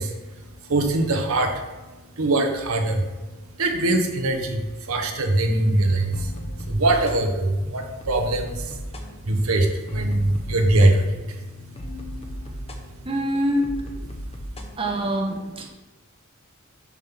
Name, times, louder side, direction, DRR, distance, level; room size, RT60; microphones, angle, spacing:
voice 1, 0.0-13.1 14.1-14.7 15.3-15.4, right 2 dB, 80° right, 4 dB, 0.9 m, -24 dB
sound 1, 6.1-14.7, equal, 30° left, 0.7 m, -36 dB
voice 2, 13.0-13.7 14.8-15.7, equal, 25° right, 1 dB, 1.0 m, -24 dB
7.2 x 3.6 x 5.9 m, 1.2 s
head